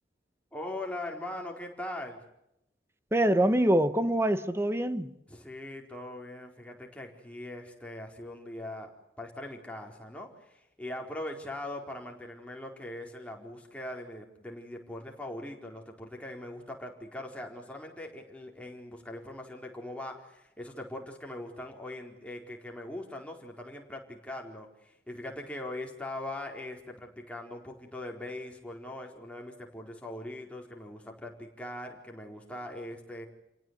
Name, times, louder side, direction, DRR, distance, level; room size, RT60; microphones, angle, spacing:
voice 1, 0.5-2.2 5.3-8.9 9.2-33.3, left 1 dB, 5° left, 4.4 m, -41 dB
voice 2, 3.1-5.1, right 1 dB, 15° right, 1.2 m, -25 dB
29.5 x 18.0 x 9.5 m
head